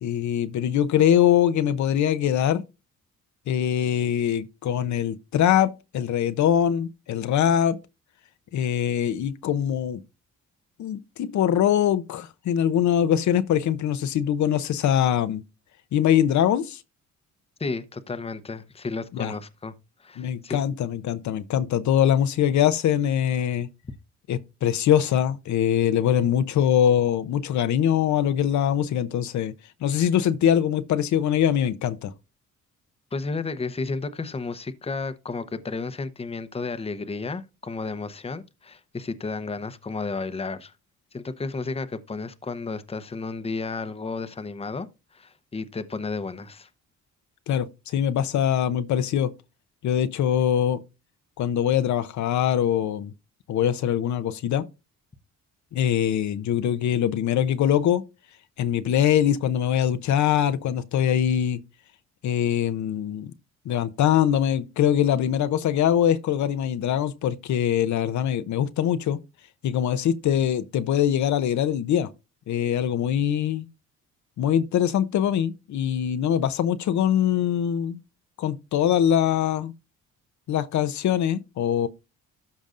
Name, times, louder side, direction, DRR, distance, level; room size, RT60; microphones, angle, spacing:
voice 1, 0.0-2.6 3.5-7.8 8.5-10.0 10.8-15.4 15.9-16.8 19.1-19.3 20.2-23.7 24.3-29.5 29.8-32.1 47.5-49.3 49.8-50.8 51.4-53.1 53.5-54.6 55.7-58.0 58.6-61.6 62.2-63.3 63.7-69.2 69.6-72.1 72.5-73.7 74.4-78.0 78.4-79.7 80.5-81.9, left 10 dB, 70° left, 0.7 m, -23 dB
voice 2, 17.6-19.7 20.0-20.6 33.1-40.7 41.1-44.9 45.1-46.7, left 3 dB, 20° left, 0.8 m, -32 dB
13.0 x 5.2 x 2.5 m
cardioid pair, 90°, 30 cm